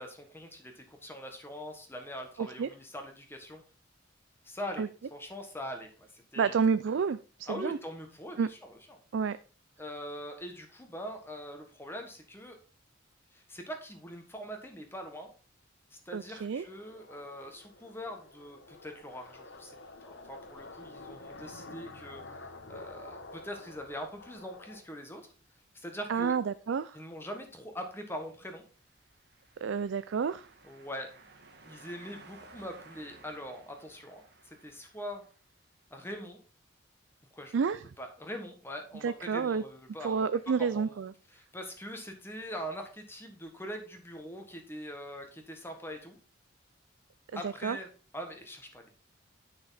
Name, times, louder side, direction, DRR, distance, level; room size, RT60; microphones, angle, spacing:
voice 1, 0.0-3.6 4.4-4.8 5.1-6.5 7.5-9.0 9.8-12.6 13.3-15.3 15.9-19.7 20.0-22.2 22.7-25.3 25.7-26.3 26.9-28.6 30.6-31.1 31.6-35.2 35.9-36.4 37.3-37.7 38.0-40.3 40.6-41.0 41.3-46.2 47.3-47.9 48.1-48.9, equal, 10° left, 1.4 m, -42 dB
voice 2, 2.4-2.7 4.8-4.9 6.4-7.8 8.4-8.5 9.1-9.4 16.1-16.6 26.1-27.0 29.6-30.5 37.5-37.8 39.0-39.6 40.0-41.1 47.3-47.8, right 6 dB, 75° right, 0.4 m, -30 dB
sound 1, 16.5-24.8, left 2 dB, 65° left, 1.1 m, -49 dB
sound 2, 28.8-35.5, right 3 dB, 55° right, 1.6 m, -56 dB
9.8 x 6.1 x 4.1 m
head